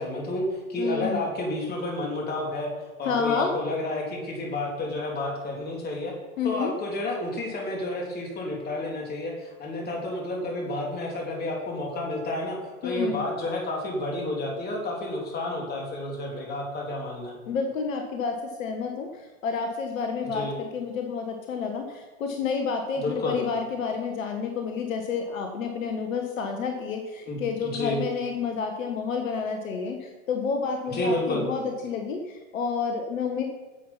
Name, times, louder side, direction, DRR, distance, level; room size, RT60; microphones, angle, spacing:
voice 1, 0.0-2.7 3.0-6.1 6.4-17.4 20.3-20.5 23.0-23.4 27.3-28.0 30.9-31.4, left 1 dB, 20° left, -1 dB, 3.4 m, -30 dB
voice 2, 0.8-1.2 3.0-3.5 6.4-6.8 12.8-13.2 17.5-33.4, left 5 dB, 65° left, 4 dB, 1.6 m, -30 dB
10.0 x 7.6 x 5.8 m, 1.2 s
hypercardioid pair, 110°, 42 cm